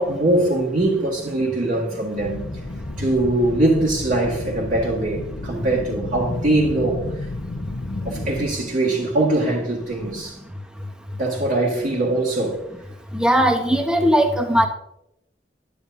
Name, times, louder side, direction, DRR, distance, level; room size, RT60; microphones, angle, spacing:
voice 1, 0.0-2.6 3.0-7.3 8.0-10.4 11.2-12.6, right 2 dB, 50° right, 1.9 m, -22 dB
sound 1, 2.2-8.5, left 2 dB, 75° left, 0.8 m, -32 dB
voice 2, 13.1-14.7, equal, 5° right, 1.1 m, -18 dB
10.5 x 9.6 x 2.7 m
head